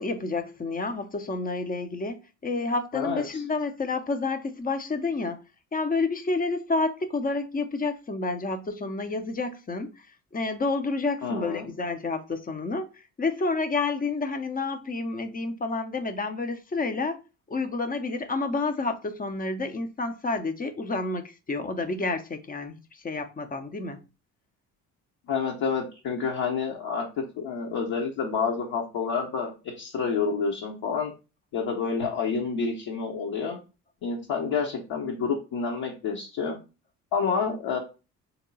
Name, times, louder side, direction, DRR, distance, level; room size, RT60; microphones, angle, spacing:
voice 1, 0.0-5.4 5.7-10.1 10.3-12.9 13.2-17.2 17.5-24.0, left 3 dB, 20° left, 0.7 m, -29 dB
voice 2, 2.9-3.2 11.2-11.7 25.3-27.0 27.4-31.1 31.5-33.6 34.0-36.6 37.1-37.8, left 5 dB, 50° left, 1.1 m, -28 dB
3.7 x 2.9 x 3.9 m
figure-of-eight pair, 50°, 47 cm